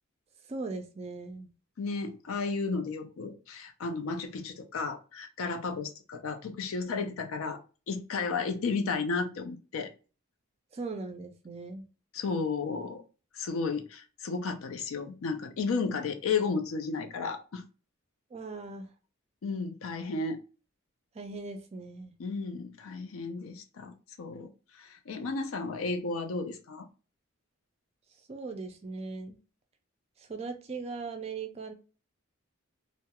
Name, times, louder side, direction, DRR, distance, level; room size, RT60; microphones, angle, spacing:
voice 1, 0.5-1.5 10.7-11.8 18.3-18.9 21.1-22.1 28.3-29.4 30.2-31.7, right 3 dB, 30° right, 0.3 m, -39 dB
voice 2, 1.8-7.6 7.9-9.9 12.1-13.0 13.3-17.6 19.4-20.4 22.2-26.9, left 4 dB, 70° left, 0.4 m, -33 dB
2.3 x 2.0 x 2.8 m
head